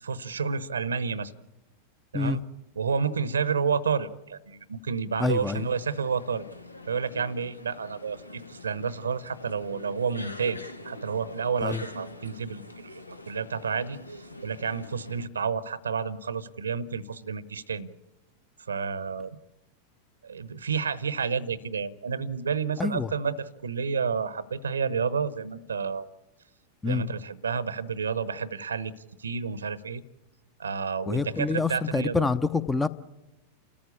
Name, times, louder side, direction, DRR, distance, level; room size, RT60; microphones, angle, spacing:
voice 1, 0.0-1.3 2.1-2.4 2.8-6.5 6.9-14.0 14.4-17.9 18.6-19.4 20.2-26.1 26.8-28.9 29.2-30.0 30.6-32.2, right 6 dB, 70° right, 19 dB, 0.9 m, -30 dB
sound 1, 5.2-15.3, left 2 dB, 85° left, 1.0 m, -44 dB
voice 2, 5.2-5.6 11.6-11.8 22.8-23.1 26.8-27.0 31.1-32.9, left 4 dB, 10° left, 15 dB, 0.7 m, -26 dB
29.5 x 14.0 x 8.4 m, 1.0 s
figure-of-eight pair, 90°, 0 cm